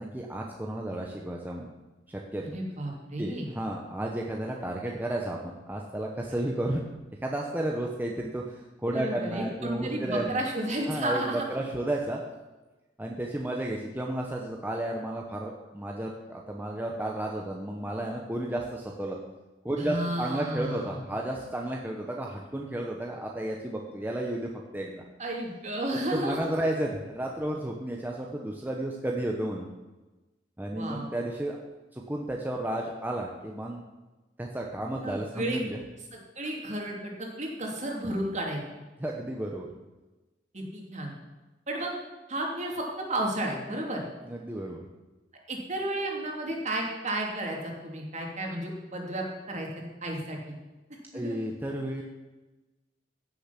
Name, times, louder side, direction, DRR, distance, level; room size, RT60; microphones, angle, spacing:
voice 1, 0.0-1.7 2.1-2.6 3.2-6.8 7.2-10.4 10.9-12.2 13.0-19.2 19.6-25.0 25.9-29.7 30.6-31.6 31.9-33.8 34.4-35.8 39.0-39.7 44.3-44.8 51.1-52.0, right 1 dB, 10° right, -1 dB, 1.0 m, -32 dB
voice 2, 2.5-3.5 8.9-11.5 19.8-21.0 25.2-26.4 30.7-31.1 35.0-35.6 36.4-38.6 40.5-41.1 41.7-41.9 42.3-44.1 45.5-49.7 50.0-50.5 51.1-51.4, right 1 dB, 40° right, 0 dB, 2.8 m, -32 dB
16.0 x 7.0 x 5.9 m, 1.1 s
head